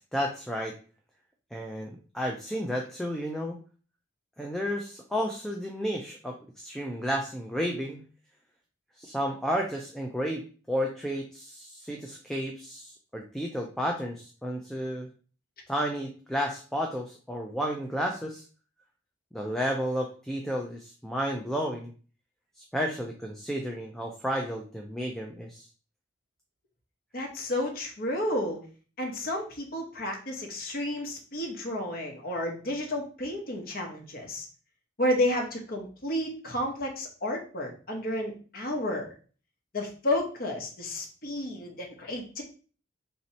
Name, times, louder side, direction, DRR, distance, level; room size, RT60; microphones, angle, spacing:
voice 1, 0.1-0.7 1.5-3.6 4.4-8.0 9.0-15.1 15.7-18.4 19.3-21.9 22.6-25.7, equal, ahead, 1 dB, 0.4 m, -32 dB
voice 2, 27.1-28.6 29.0-34.5 35.0-39.1 39.7-42.4, left 1 dB, 50° left, 1 dB, 0.9 m, -31 dB
3.0 x 2.8 x 4.1 m, 0.38 s
head